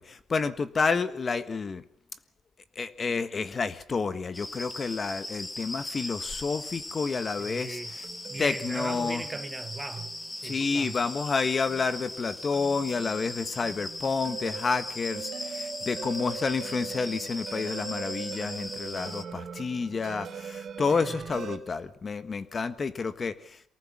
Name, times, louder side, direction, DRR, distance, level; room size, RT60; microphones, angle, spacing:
voice 1, 0.0-1.8 2.7-7.8 8.4-9.2 10.4-23.6, left 4 dB, 40° left, 1.4 m, -30 dB
sound 1, 4.3-19.2, left 1 dB, 20° left, 2.0 m, -39 dB
voice 2, 7.4-7.9 8.3-11.0 20.9-21.2, right 3 dB, 20° right, 1.2 m, -39 dB
sound 2, 7.6-21.6, right 7 dB, 60° right, 3.5 m, -42 dB
23.5 x 18.5 x 7.5 m
cardioid pair, 90°, 0 cm